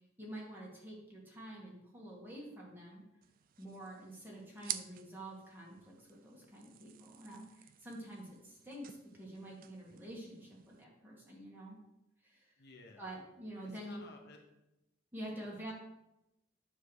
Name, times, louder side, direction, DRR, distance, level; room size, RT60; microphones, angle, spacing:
voice 1, 0.2-3.0 3.6-11.8 12.2-12.5 13.0-14.0 15.1-15.7, right 1 dB, 10° right, -4 dB, 2.0 m, -48 dB
sound 1, 3.2-10.8, right 12 dB, 45° right, 0.4 m, -50 dB
voice 2, 12.6-13.2 13.6-14.4, left 3 dB, 55° left, 2 dB, 1.0 m, -55 dB
9.4 x 3.6 x 6.5 m, 0.89 s
head